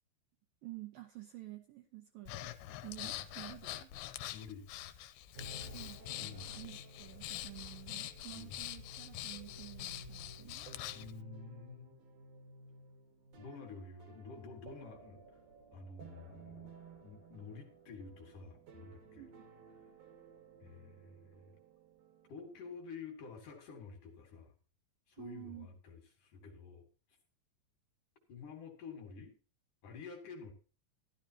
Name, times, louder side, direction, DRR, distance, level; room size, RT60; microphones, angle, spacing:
voice 1, 0.6-2.6 2.8-3.9 5.7-10.7 19.2-19.5 25.2-25.7, right 17 dB, 75° right, 4 dB, 2.1 m, -50 dB
Breathing, 2.3-11.1, left 13 dB, 85° left, 2.8 m, -45 dB
voice 2, 4.3-4.7 6.2-6.5 8.3-8.5 10.9-12.0 13.4-15.4 15.7-16.7 17.0-19.2 20.6-21.6 22.3-24.5 25.1-26.9 28.3-29.3 29.8-30.5, left 5 dB, 55° left, 3 dB, 2.9 m, -50 dB
sound 1, 5.3-22.8, right 2 dB, 55° right, 2.0 m, -55 dB
13.0 x 12.5 x 2.9 m, 0.35 s
omnidirectional pair, 5.0 m